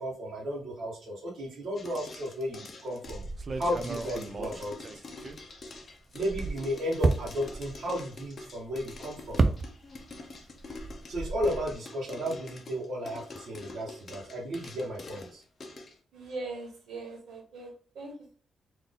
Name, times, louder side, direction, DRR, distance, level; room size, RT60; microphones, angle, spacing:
voice 1, 0.0-3.2 3.5-4.7 6.1-9.4 11.1-15.4, equal, 55° right, -5 dB, 1.1 m, -34 dB
sound 1, 1.8-16.0, left 3 dB, 35° left, 0.7 m, -46 dB
sound 2, 3.0-5.7 6.1-10.2 10.4-11.7, right 3 dB, 35° right, 0.4 m, -32 dB
voice 2, 16.1-18.4, right 3 dB, 70° right, 2 dB, 1.3 m, -41 dB
4.1 x 2.6 x 3.6 m, 0.44 s
wide cardioid pair, 150°, 0 cm